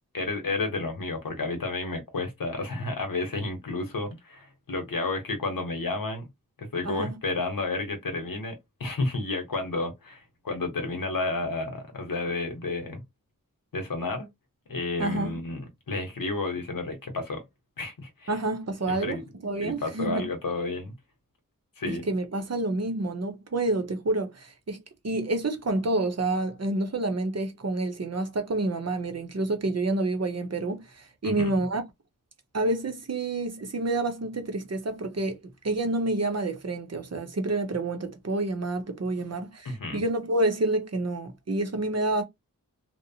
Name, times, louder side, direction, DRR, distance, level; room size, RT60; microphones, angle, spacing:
voice 1, 0.1-6.3 6.6-13.0 13.7-14.3 14.7-17.4 17.8-18.3 18.9-19.2 19.6-20.9 21.8-22.1 31.2-31.5 39.6-40.0, left 3 dB, 80° left, 0.9 m, -31 dB
voice 2, 15.0-15.4 18.3-20.3 21.9-24.8 25.0-31.8 32.5-35.4 35.6-42.2, right 2 dB, 50° right, 0.7 m, -28 dB
2.8 x 2.0 x 2.7 m
wide cardioid pair, 60°, 33 cm